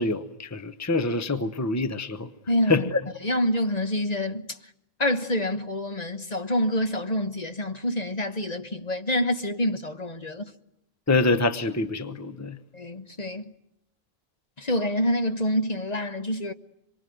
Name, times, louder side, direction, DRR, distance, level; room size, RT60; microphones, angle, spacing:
voice 1, 0.0-2.3 2.7-3.0 11.1-12.5, left 3 dB, 15° left, 1.0 m, -25 dB
voice 2, 2.5-2.9 3.2-4.6 5.0-10.4 12.7-13.4 14.6-16.5, left 1 dB, 40° left, 1.3 m, -27 dB
26.0 x 23.0 x 9.3 m
omnidirectional pair, 1.0 m